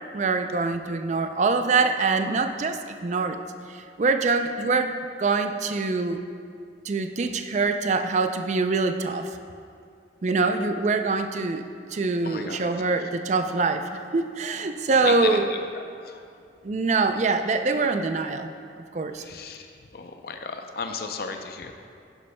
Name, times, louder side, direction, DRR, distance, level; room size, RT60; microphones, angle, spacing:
voice 1, 0.1-3.4 3.7-4.9 5.2-6.2 6.9-9.3 10.2-11.6 11.9-15.5 16.6-18.5 18.9-19.2, right 3 dB, 40° right, 7 dB, 0.4 m, -24 dB
voice 2, 12.2-12.6 15.0-15.4 16.0-16.1 19.2-19.6 19.9-21.7, left 5 dB, 55° left, 5 dB, 0.5 m, -34 dB
10.5 x 10.5 x 2.2 m, 2.3 s
head